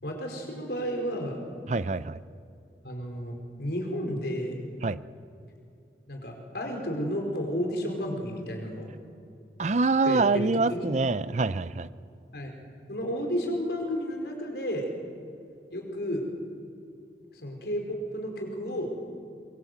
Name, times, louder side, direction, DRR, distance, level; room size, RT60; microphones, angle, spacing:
voice 1, 0.0-1.4 2.8-4.6 6.1-8.9 10.0-10.9 12.3-12.5 12.9-14.8 15.7-16.2 17.3-18.9, equal, 65° left, 2 dB, 4.9 m, -32 dB
voice 2, 1.7-2.2 4.8-5.0 9.6-11.9, right 3 dB, 40° right, 16 dB, 0.5 m, -25 dB
23.5 x 23.5 x 8.1 m, 2.6 s
head